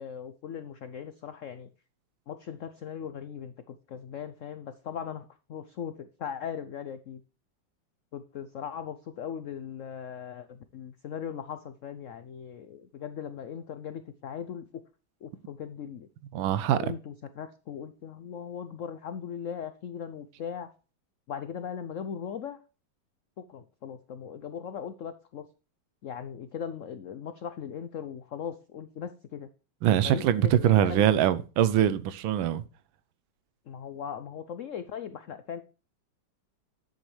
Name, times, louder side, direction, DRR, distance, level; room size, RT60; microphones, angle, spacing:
voice 1, 0.0-1.7 2.3-7.2 8.1-14.8 15.2-16.1 16.6-20.7 21.3-22.6 23.4-25.4 26.0-29.5 30.0-31.2 33.7-35.6, left 8 dB, 85° left, 0.6 m, -39 dB
voice 2, 16.3-16.9 29.8-32.6, right 11 dB, 85° right, 1.5 m, -23 dB
10.5 x 8.3 x 3.2 m
omnidirectional pair, 2.1 m